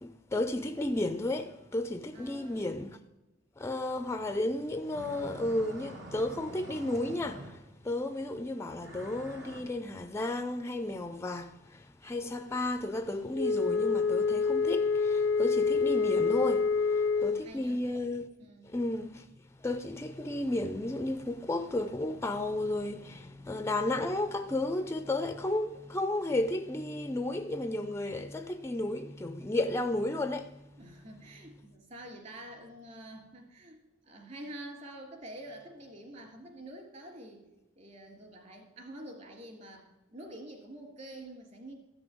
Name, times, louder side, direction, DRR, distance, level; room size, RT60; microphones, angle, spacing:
voice 1, 0.0-3.0 3.6-18.3 18.6-19.3 19.6-30.6, left 1 dB, 15° left, 0.4 m, -33 dB
voice 2, 2.1-2.8 17.2-17.8 18.4-18.7 30.8-33.8 34.0-37.5 37.7-41.7, right 1 dB, 40° right, 3.1 m, -47 dB
sound 1, 4.8-7.9 8.8-9.6, right 1 dB, 75° right, 3.0 m, -46 dB
Wind instrument woodwind instrument, 13.3-17.5, left 4 dB, 75° left, 0.5 m, -27 dB
14.0 x 6.1 x 9.2 m
head